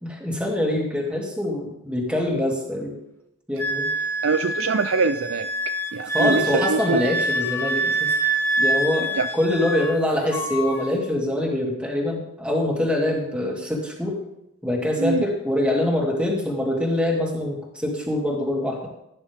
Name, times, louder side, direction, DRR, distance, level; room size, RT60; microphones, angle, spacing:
voice 1, 0.0-3.0 3.5-3.9 6.1-8.1 8.6-14.2 14.6-18.9, left 1 dB, 5° right, -2 dB, 2.6 m, -24 dB
Wind instrument woodwind instrument, 3.6-10.0 10.3-10.9, right 1 dB, 10° left, 0.9 m, -26 dB
voice 2, 4.2-5.5 5.9-7.0 9.1-9.3 15.0-15.2, right 4 dB, 65° right, 10 dB, 0.5 m, -23 dB
17.0 x 10.0 x 3.6 m, 0.85 s
head